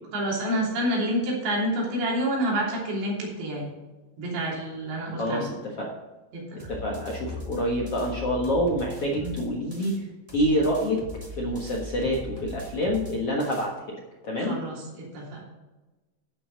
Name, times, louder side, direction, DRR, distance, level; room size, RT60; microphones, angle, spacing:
voice 1, 0.1-3.7 4.2-5.5 6.3-6.8 9.2-9.3 14.5-15.4, right 1 dB, 85° right, -3 dB, 5.4 m, -28 dB
voice 2, 5.2-5.9 6.7-10.1 10.3-11.0 11.4-14.6, equal, 60° left, -2 dB, 1.6 m, -27 dB
sound 1, 6.6-10.0 10.3-13.7, left 2 dB, 35° right, 0.5 m, -40 dB
12.0 x 8.7 x 4.0 m, 1.2 s
omnidirectional pair, 4.9 m